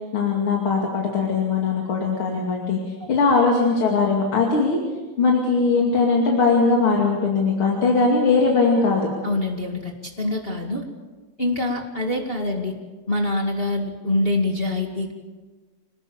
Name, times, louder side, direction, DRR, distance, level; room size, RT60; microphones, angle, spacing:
voice 1, 0.1-4.8 5.2-9.1, left 4 dB, 40° left, 0 dB, 2.9 m, -20 dB
voice 2, 9.2-10.8 11.4-12.7 13.1-15.1, left 2 dB, 20° left, 1 dB, 1.6 m, -25 dB
27.0 x 19.5 x 7.2 m, 1.3 s
omnidirectional pair, 4.3 m